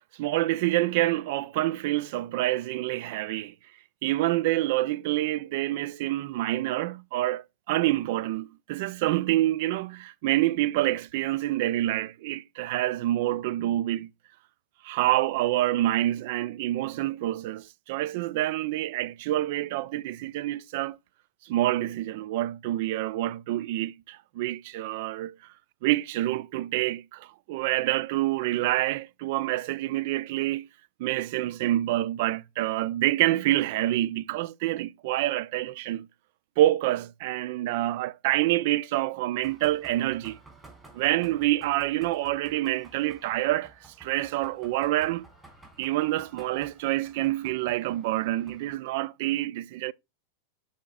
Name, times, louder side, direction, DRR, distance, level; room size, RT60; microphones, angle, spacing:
voice 1, 0.0-3.5 4.0-14.1 14.8-21.0 21.4-25.3 25.8-30.7 31.0-36.1 36.6-40.4 40.9-45.3 45.8-49.9, right 15 dB, 50° right, 0.3 m, -27 dB
sound 1, 39.4-48.8, right 2 dB, 15° right, 3.6 m, -53 dB
11.5 x 4.2 x 2.3 m
figure-of-eight pair, 90°, 0 cm